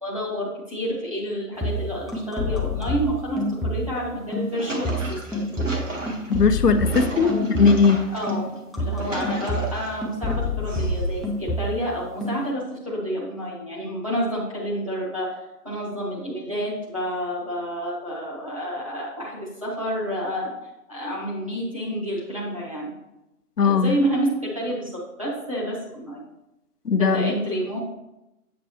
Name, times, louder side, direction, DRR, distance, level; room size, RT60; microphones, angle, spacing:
voice 1, 0.0-5.4 7.0-7.5 8.1-8.5 8.8-15.4 15.6-20.5 20.9-22.9 23.6-26.2 27.0-27.8, equal, 20° right, -6 dB, 1.1 m, -29 dB
sound 1, 1.5-4.1 4.3-8.0 8.3-11.9 12.2-12.5, left 1 dB, ahead, 0.5 m, -28 dB
sound 2, 4.2-8.3 8.8-10.0 10.7-11.4, right 1 dB, 55° right, 1.4 m, -32 dB
voice 2, 6.3-7.3 7.6-8.0 23.6-23.9 26.9-27.3, left 5 dB, 80° left, 9 dB, 0.7 m, -18 dB
7.4 x 5.5 x 2.9 m, 0.91 s
figure-of-eight pair, 170°, 46 cm